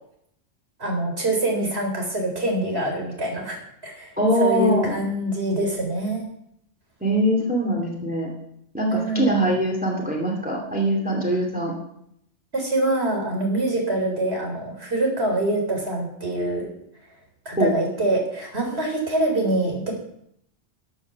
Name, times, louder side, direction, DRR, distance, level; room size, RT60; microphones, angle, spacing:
voice 1, 0.8-3.6 3.8-4.1 4.4-6.2 8.9-9.5 12.5-16.7 17.5-19.9, right 1 dB, 60° right, 1 dB, 4.1 m, -25 dB
voice 2, 4.2-5.0 7.0-8.3 8.7-11.7 17.6-17.7, equal, 5° right, -1 dB, 2.7 m, -22 dB
14.0 x 7.6 x 7.0 m, 0.72 s
omnidirectional pair, 1.2 m